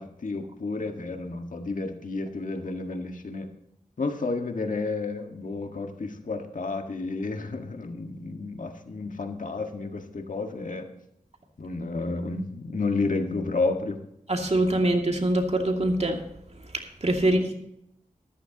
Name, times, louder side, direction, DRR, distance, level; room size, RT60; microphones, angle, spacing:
voice 1, 0.0-3.5 4.0-10.9 11.6-14.0 17.3-17.4, left 3 dB, 70° left, 5 dB, 1.7 m, -31 dB
voice 2, 14.3-16.2 16.7-17.6, right 1 dB, 50° right, 3 dB, 2.4 m, -24 dB
13.5 x 13.5 x 2.9 m, 0.78 s
wide cardioid pair, 55°, 14 cm